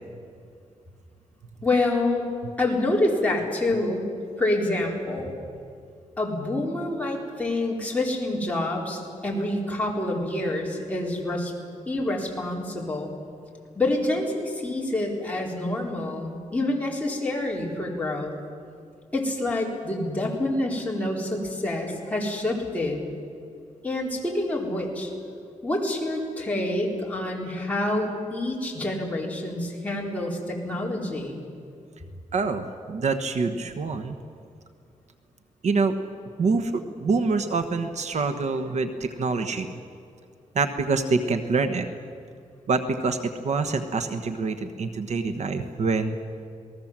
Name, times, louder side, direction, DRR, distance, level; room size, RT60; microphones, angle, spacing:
voice 1, 1.6-2.3 2.6-4.1 4.4-5.3 6.2-11.5 11.9-13.1 13.7-18.3 19.1-23.0 23.8-25.1 25.6-31.4, left 2 dB, 10° left, -3 dB, 4.3 m, -27 dB
voice 2, 32.3-34.1 35.6-35.9 36.4-39.8 40.5-41.9 42.7-46.2, right 4 dB, 60° right, 8 dB, 1.3 m, -26 dB
28.0 x 19.0 x 7.5 m, 2.5 s
wide cardioid pair, 150°, 13 cm